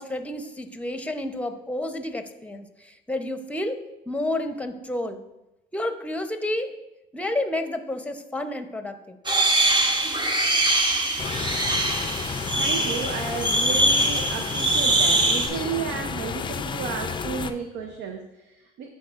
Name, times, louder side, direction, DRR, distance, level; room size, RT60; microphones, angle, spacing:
voice 1, 0.0-3.8 4.1-5.2 5.7-6.7 7.1-9.2, left 1 dB, 5° left, 8 dB, 0.8 m, -30 dB
sound 1, 9.2-15.5, right 1 dB, 25° right, 1.0 m, -23 dB
sound 2, 11.2-17.5, left 6 dB, 25° left, 0.4 m, -32 dB
voice 2, 12.5-18.9, right 5 dB, 70° right, 5 dB, 0.6 m, -32 dB
12.0 x 4.0 x 2.5 m, 0.94 s
supercardioid pair, 75°, 18 cm